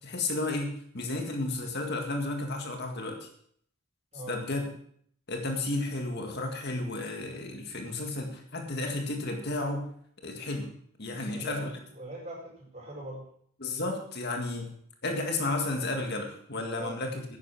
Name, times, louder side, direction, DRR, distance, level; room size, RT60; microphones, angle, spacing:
voice 1, 0.0-3.3 4.3-4.6 5.3-9.9 10.2-10.7 11.0-11.7 13.6-14.7 15.0-17.4, left 2 dB, 50° left, 3 dB, 1.9 m, -32 dB
voice 2, 11.2-13.3 16.8-17.0, right 1 dB, 30° right, -2 dB, 5.0 m, -42 dB
11.0 x 10.0 x 6.0 m, 0.63 s
head